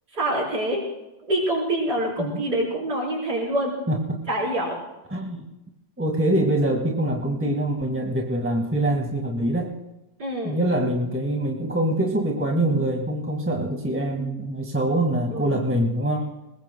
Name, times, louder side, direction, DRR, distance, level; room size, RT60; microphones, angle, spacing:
voice 1, 0.1-0.8 1.3-3.7 4.3-4.8 10.2-10.6 15.3-15.6, right 1 dB, 75° right, -6 dB, 5.2 m, -26 dB
voice 2, 3.9-4.2 5.1-5.4 6.0-9.7 10.4-16.3, right 1 dB, 10° right, 1 dB, 1.9 m, -24 dB
22.0 x 21.0 x 2.3 m, 0.96 s
omnidirectional pair, 1.8 m